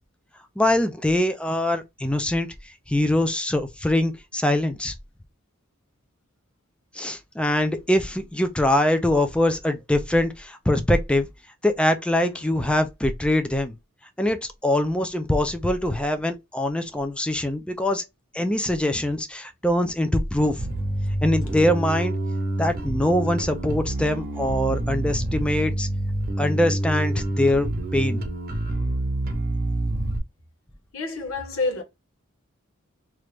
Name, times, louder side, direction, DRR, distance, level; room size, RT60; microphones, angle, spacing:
voice 1, 0.6-2.5 2.9-4.9 7.0-11.3 11.6-13.7 14.2-14.4 14.6-18.0 18.3-20.6 21.2-22.1 22.6-25.9 26.4-28.2, left 1 dB, 5° left, 0.4 m, -23 dB
voice 2, 12.3-12.7 30.9-31.8, left 3 dB, 80° left, 1.1 m, -29 dB
Bass guitar, 20.6-30.2, right 1 dB, 45° right, 0.8 m, -27 dB
3.1 x 2.5 x 3.3 m
head